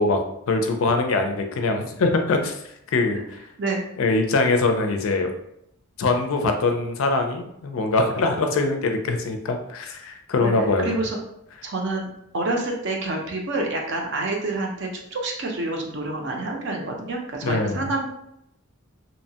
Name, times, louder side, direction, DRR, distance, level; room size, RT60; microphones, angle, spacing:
voice 1, 0.0-2.5 2.9-3.2 4.0-5.3 6.0-10.9 17.4-17.8, left 3 dB, 65° left, 5 dB, 0.4 m, -22 dB
voice 2, 10.4-11.2 11.6-12.1 12.3-18.1, right 2 dB, 55° right, 1 dB, 0.5 m, -28 dB
2.7 x 2.1 x 2.7 m, 0.78 s
head